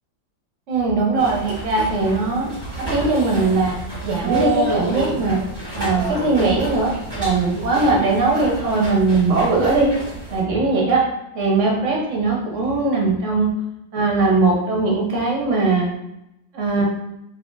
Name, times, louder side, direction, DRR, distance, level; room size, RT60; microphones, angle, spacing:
voice 1, 0.7-2.5 2.8-3.8 4.0-5.4 5.7-9.9 10.3-11.0 11.3-13.5 13.9-15.9 16.5-16.8, right 3 dB, 55° right, -2 dB, 0.9 m, -20 dB
sound 1, 1.1-10.4, right 2 dB, 20° right, 0.8 m, -28 dB
4.1 x 3.1 x 2.5 m, 0.87 s
omnidirectional pair, 2.0 m